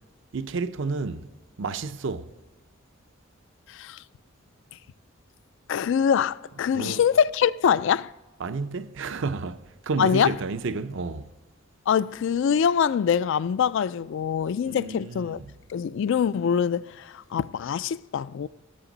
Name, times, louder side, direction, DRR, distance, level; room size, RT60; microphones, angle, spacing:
voice 1, 0.3-1.3 1.6-2.3 6.7-7.0 8.4-11.3 14.7-15.5, right 4 dB, 65° right, 0.6 m, -31 dB
voice 2, 3.7-4.0 5.7-8.1 10.0-10.4 11.9-15.4 15.7-18.5, left 7 dB, 65° left, 0.3 m, -24 dB
18.0 x 7.4 x 3.9 m
head